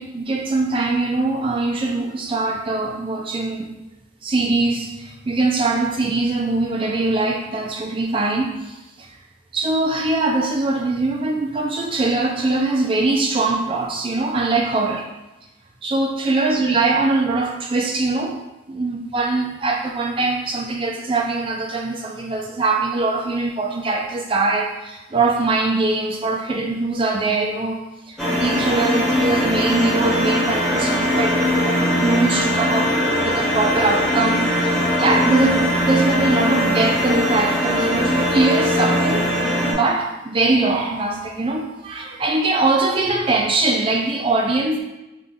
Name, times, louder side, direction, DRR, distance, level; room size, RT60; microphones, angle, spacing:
voice 1, 0.0-3.7 4.2-9.1 9.5-15.1 15.8-18.4 18.7-32.9 33.2-39.3 39.7-44.8, right 3 dB, 25° right, 2 dB, 0.4 m, -22 dB
sound 1, 28.2-39.7, left 1 dB, 5° left, 0.8 m, -20 dB
3.5 x 2.4 x 3.6 m, 0.98 s
head